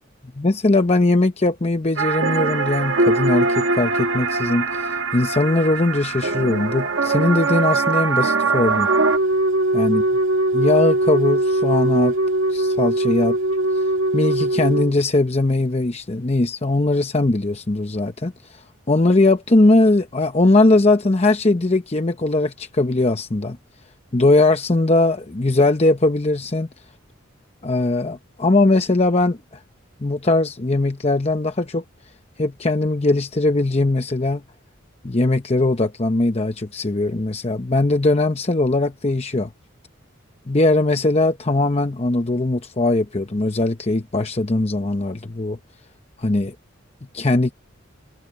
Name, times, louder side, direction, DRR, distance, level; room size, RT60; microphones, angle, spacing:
voice 1, 0.4-8.9 9.7-10.0 10.5-12.1 12.5-13.4 13.7-23.6 24.1-26.7 27.6-29.4 30.0-31.8 32.4-34.4 35.0-39.5 40.5-45.6 46.2-46.5 47.1-47.5, left 2 dB, 30° left, 0.8 m, -20 dB
sound 1, 2.0-9.2, right 4 dB, 70° right, 1.4 m, -22 dB
Wind instrument woodwind instrument, 8.9-14.9, right 1 dB, 85° right, 2.2 m, -20 dB
head